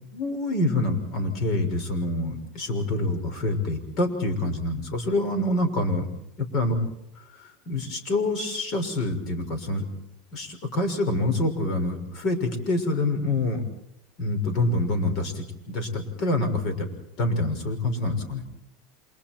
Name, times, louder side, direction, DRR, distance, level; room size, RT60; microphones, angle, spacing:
voice 1, 0.1-6.1 6.5-6.7 7.4-9.9 10.3-13.6 14.2-16.9 17.2-18.4, left 2 dB, 45° left, 7 dB, 6.2 m, -26 dB
30.0 x 27.0 x 4.6 m, 0.80 s
supercardioid pair, 145°, 0 cm